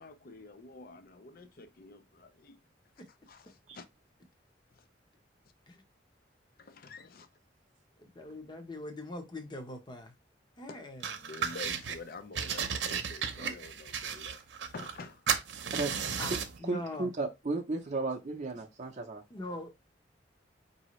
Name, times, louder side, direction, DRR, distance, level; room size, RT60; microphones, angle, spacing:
voice 1, 0.0-2.6 3.3-3.8 4.8-4.9 6.6-7.3 10.7-10.8 11.2-14.4 14.7-15.4, left 3 dB, 55° left, 0.5 m, -48 dB
voice 2, 8.0-10.1 10.6-11.1 16.2-17.1 19.3-19.7, left 1 dB, 25° left, 0.8 m, -42 dB
sound 1, 11.0-12.0 12.3-15.0 15.3-16.6, right 7 dB, 85° right, 0.7 m, -34 dB
voice 3, 16.6-19.2, right 3 dB, 40° right, 0.6 m, -34 dB
4.9 x 2.7 x 3.1 m
head